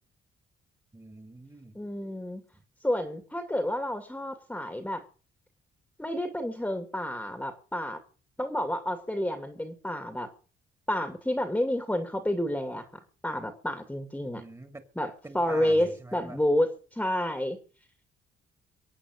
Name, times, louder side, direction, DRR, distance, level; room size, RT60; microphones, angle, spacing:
voice 1, 0.9-1.8 2.5-2.6 14.4-14.8 15.2-16.4, right 2 dB, 15° right, 7 dB, 2.9 m, -45 dB
voice 2, 1.8-2.4 2.8-5.0 6.0-8.0 8.4-10.3 10.9-12.9 13.2-14.4 15.0-15.1 15.3-17.6, left 1 dB, 5° left, 7 dB, 2.3 m, -29 dB
23.5 x 8.6 x 6.5 m, 0.40 s
cardioid pair, 90°, 20 cm